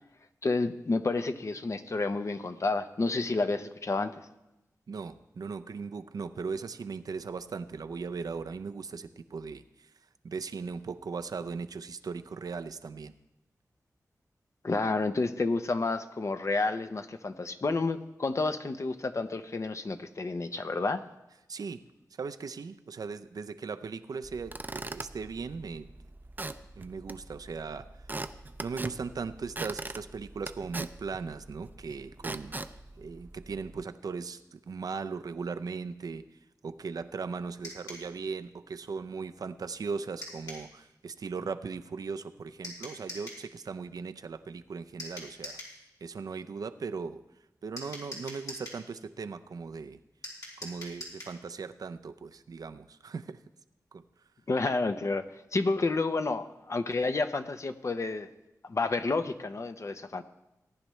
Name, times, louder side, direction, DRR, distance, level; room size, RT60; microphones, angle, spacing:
voice 1, 0.4-4.1 14.6-21.0 54.5-55.3 55.5-58.3 58.6-60.2, left 3 dB, 50° left, 9 dB, 0.7 m, -30 dB
voice 2, 4.9-9.9 10.2-13.1 21.5-21.8 22.1-25.9 26.8-28.1 28.6-32.5 33.0-36.3 36.6-45.6 46.0-47.2 47.6-50.0 50.6-53.4 53.9-54.0, right 5 dB, 75° right, 9 dB, 0.5 m, -38 dB
Squeak / Wood, 24.2-33.8, right 2 dB, 30° right, 0.5 m, -42 dB
sound 1, 37.6-38.1 40.2-40.7 42.6-43.4 45.0-45.8 47.8-48.8 50.2-51.4, left 1 dB, 70° left, 4.1 m, -43 dB
18.0 x 10.5 x 3.2 m, 0.94 s
wide cardioid pair, 65°, 6 cm